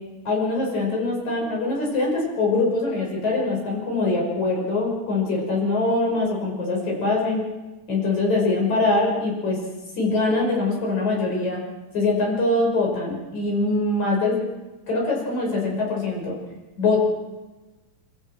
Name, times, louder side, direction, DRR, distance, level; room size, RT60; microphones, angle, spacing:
voice 1, 0.3-7.4 7.9-9.6 10.0-11.6 11.9-14.4 14.9-16.3 16.8-17.0, left 2 dB, 50° left, -2 dB, 7.3 m, -23 dB
28.5 x 14.5 x 6.3 m, 1.1 s
omnidirectional pair, 4.3 m